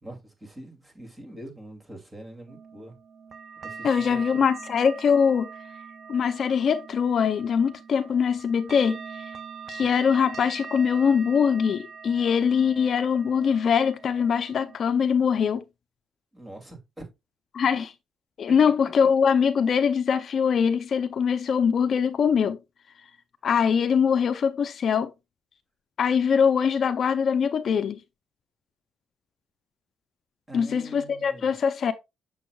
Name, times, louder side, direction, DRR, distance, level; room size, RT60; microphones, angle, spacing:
voice 1, 0.0-2.9 3.6-4.4 16.3-17.1 30.5-31.5, right 1 dB, 20° right, 2.5 m, -44 dB
sound 1, 2.5-14.8, right 5 dB, 50° right, 0.6 m, -42 dB
voice 2, 3.8-5.5 6.1-9.0 9.7-15.6 17.5-17.9 18.4-22.6 23.4-25.1 26.0-28.0 30.5-31.9, left 7 dB, 55° left, 0.5 m, -22 dB
6.9 x 6.2 x 2.3 m
cardioid pair, 90°, 0 cm